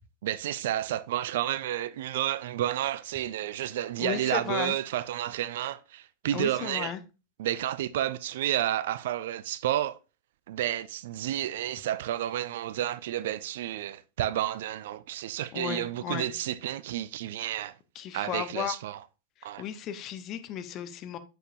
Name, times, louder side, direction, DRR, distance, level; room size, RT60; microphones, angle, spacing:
voice 1, 0.2-6.9 7.4-10.0 10.5-17.7 18.1-19.0 19.4-19.6, right 12 dB, 55° right, 0.4 m, -31 dB
voice 2, 4.0-4.7 6.3-7.0 15.5-16.3 17.9-18.7 19.6-21.2, left 10 dB, 35° left, 0.9 m, -34 dB
9.1 x 6.6 x 2.5 m
figure-of-eight pair, 90°, 0 cm